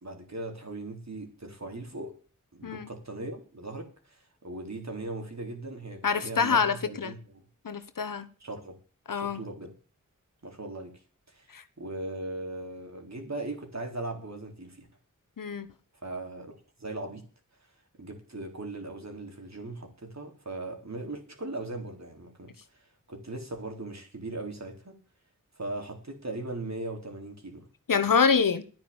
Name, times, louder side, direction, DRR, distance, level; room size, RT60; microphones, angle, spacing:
voice 1, 0.0-2.2 2.5-4.2 4.4-7.4 8.4-8.8 9.2-9.7 10.4-10.9 11.3-11.5 11.8-14.9 16.0-17.3 18.0-22.5 23.1-25.0 25.6-27.7, right 2 dB, 55° right, 3.9 m, -39 dB
voice 2, 6.0-7.1 7.6-8.3 9.1-9.4 11.5-11.6 15.4-15.7 27.9-28.6, left 5 dB, 80° left, 1.2 m, -26 dB
11.0 x 9.6 x 7.2 m
wide cardioid pair, 45°, 32 cm